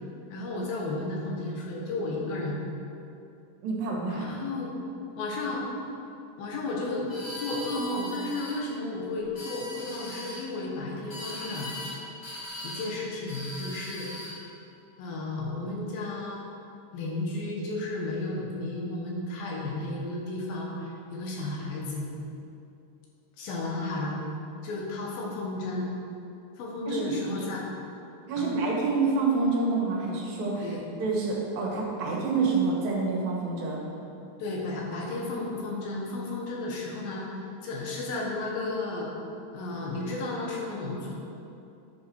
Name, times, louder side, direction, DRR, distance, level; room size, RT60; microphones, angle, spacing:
voice 1, 0.3-2.6 4.1-4.7 5.2-5.7 6.4-7.1 7.4-11.7 12.6-14.1 15.0-16.5 16.9-22.1 23.4-24.2 24.6-26.0 26.6-27.7 28.4-28.5 30.6-30.8 34.4-39.1 39.5-41.1, left 2 dB, 90° left, -2 dB, 3.2 m, -33 dB
voice 2, 3.6-4.3 26.9-27.1 28.3-30.7 31.0-33.8, right 3 dB, 85° right, -3 dB, 3.2 m, -27 dB
sound 1, 7.1-8.6 9.2-10.4 11.1-12.0 12.2-12.9 13.3-14.4, left 1 dB, 40° left, 1.8 m, -39 dB
11.0 x 5.6 x 4.7 m, 2.7 s
omnidirectional pair, 4.0 m